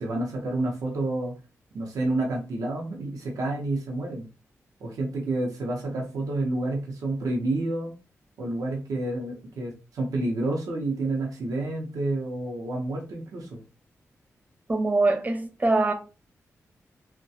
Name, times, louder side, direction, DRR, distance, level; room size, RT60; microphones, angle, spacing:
voice 1, 0.0-1.3 1.7-4.3 4.8-7.9 8.4-13.6, right 2 dB, 85° right, 0.6 m, -29 dB
voice 2, 14.7-15.9, right 2 dB, 30° right, 0.6 m, -23 dB
2.3 x 2.1 x 2.6 m
cardioid pair, 65°, 6 cm